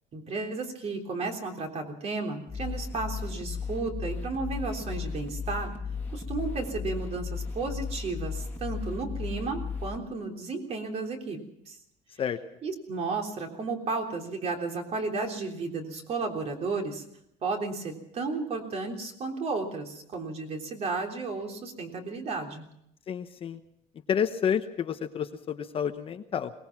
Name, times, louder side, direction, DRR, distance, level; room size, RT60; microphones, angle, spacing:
voice 1, 0.1-5.7 6.1-11.4 11.7-11.8 12.6-17.0 17.4-22.7, right 3 dB, 40° right, 3 dB, 3.4 m, -33 dB
sound 1, 2.5-10.0, left 5 dB, 15° left, 2.2 m, -35 dB
voice 2, 23.1-23.6 24.1-26.5, left 8 dB, 35° left, 8 dB, 1.0 m, -29 dB
22.5 x 19.5 x 6.0 m, 0.78 s
cardioid pair, 145°, 17 cm